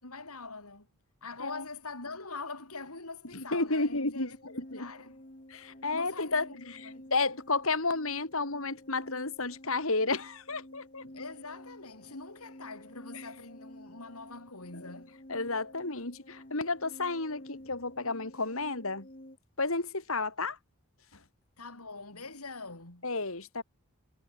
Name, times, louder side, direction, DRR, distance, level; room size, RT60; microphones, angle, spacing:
voice 1, 0.0-0.9 1.2-5.2 5.9-7.0 11.0-15.2 21.6-23.1, left 3 dB, 90° left, 5.4 m, -44 dB
voice 2, 3.3-4.9 5.5-6.4 7.1-11.1 13.1-13.2 14.7-14.9 15.3-19.1 19.6-20.6 23.0-23.6, left 3 dB, 70° left, 3.5 m, -32 dB
sound 1, 4.2-19.4, left 1 dB, 35° left, 2.9 m, -51 dB
head